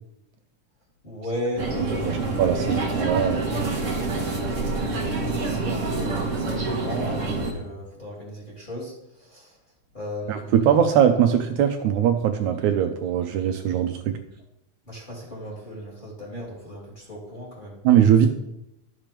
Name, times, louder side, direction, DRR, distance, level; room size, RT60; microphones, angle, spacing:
voice 1, 1.0-2.6 4.2-9.6 9.9-10.7 14.9-17.8, equal, 15° left, -4 dB, 2.3 m, -36 dB
sound 1, 1.6-7.5, right 3 dB, 55° right, 0.8 m, -27 dB
voice 2, 2.0-3.5 10.3-14.2 17.8-18.3, right 9 dB, 80° right, 6 dB, 1.9 m, -21 dB
12.5 x 7.5 x 3.4 m, 0.84 s
omnidirectional pair, 3.7 m